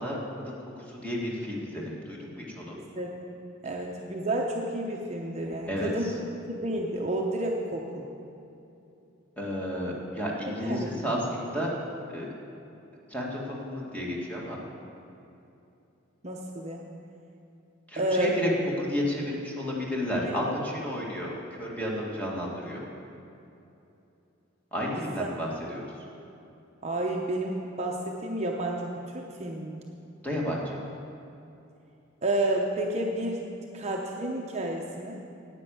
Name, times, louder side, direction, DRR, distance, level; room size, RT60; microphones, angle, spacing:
voice 1, 0.0-2.8 5.7-6.1 9.4-11.7 12.1-12.3 13.1-14.6 17.9-18.5 18.8-22.8 24.7-25.9 30.2-30.8, equal, 10° left, -4 dB, 1.8 m, -32 dB
voice 2, 2.7-3.4 3.6-6.1 6.5-8.0 10.5-10.9 16.2-16.8 18.0-18.3 20.3-20.4 25.2-25.3 26.8-29.8 32.2-33.5 33.7-35.2, right 1 dB, 35° right, 0 dB, 0.8 m, -30 dB
9.8 x 9.0 x 7.0 m, 2.8 s
head